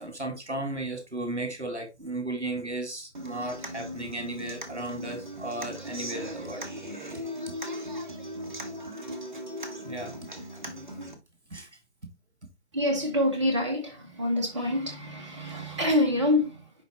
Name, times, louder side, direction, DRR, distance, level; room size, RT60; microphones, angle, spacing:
voice 1, 0.0-6.6 9.8-10.1 11.5-11.7, right 2 dB, 80° right, 2.3 m, -35 dB
Human voice / Acoustic guitar, 3.1-11.1, equal, 45° right, 1.5 m, -38 dB
voice 2, 12.7-16.7, left 1 dB, 25° right, 1.8 m, -26 dB
10.5 x 3.7 x 3.0 m
figure-of-eight pair, 155°, 34 cm